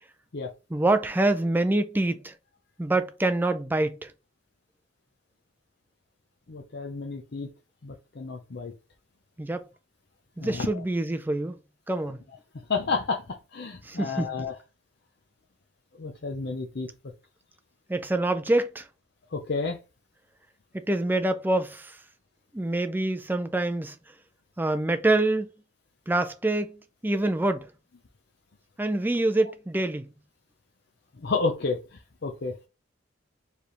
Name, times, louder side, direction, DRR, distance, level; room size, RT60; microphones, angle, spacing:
voice 1, 0.7-2.3 2.8-4.1 9.4-9.7 10.4-11.6 11.9-12.2 13.8-14.3 17.9-18.9 20.7-22.0 22.5-24.0 24.6-25.5 26.1-26.8 27.0-27.7 28.8-30.1, right 2 dB, 10° right, 0.4 m, -26 dB
voice 2, 6.5-7.5 7.8-8.7 10.4-10.7 12.7-13.2 13.5-14.5 16.0-16.9 19.3-19.8 31.2-31.8 32.2-32.5, left 4 dB, 55° left, 0.6 m, -30 dB
4.7 x 3.4 x 3.0 m
head